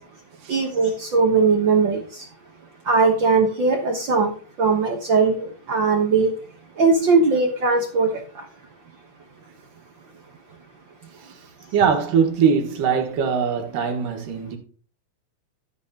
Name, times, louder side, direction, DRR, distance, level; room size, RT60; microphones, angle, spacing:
voice 1, 0.5-2.0 2.9-4.3 4.6-6.3 6.8-8.1, right 4 dB, 60° right, 1.2 m, -19 dB
voice 2, 11.7-14.6, right 6 dB, 85° right, 3.1 m, -21 dB
13.0 x 9.0 x 2.8 m
omnidirectional pair, 3.7 m